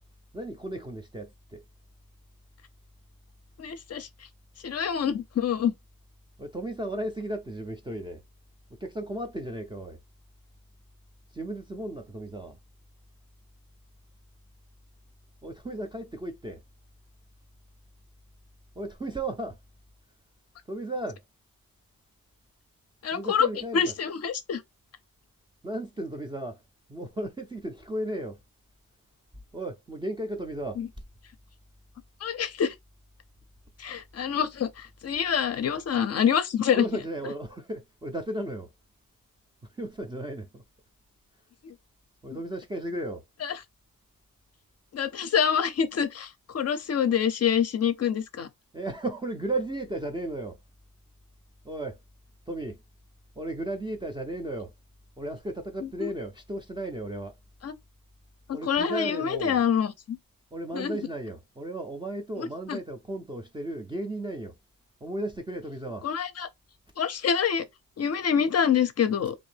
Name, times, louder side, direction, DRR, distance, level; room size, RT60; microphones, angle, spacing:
voice 1, 0.3-1.6 6.4-8.2 8.8-10.0 11.3-12.6 15.4-16.6 18.8-19.6 20.7-21.2 23.1-23.9 25.6-26.6 26.9-28.4 29.5-30.8 36.7-38.7 39.8-40.6 42.2-43.2 48.7-50.6 51.6-52.0 52.5-52.8 53.4-54.7 55.2-57.4 58.5-59.6 60.5-64.5 65.0-66.1, right 1 dB, 15° right, 0.3 m, -35 dB
voice 2, 3.6-4.1 4.6-5.7 23.0-23.5 23.7-24.6 30.8-30.9 32.2-32.7 33.8-36.8 41.6-41.7 43.4-43.5 44.9-48.5 55.8-56.1 57.6-57.7 58.5-60.2 60.7-61.0 62.4-62.8 66.0-66.5 67.0-67.7 68.0-69.3, left 7 dB, 45° left, 0.5 m, -26 dB
3.5 x 2.6 x 3.2 m
wide cardioid pair, 175°, 36 cm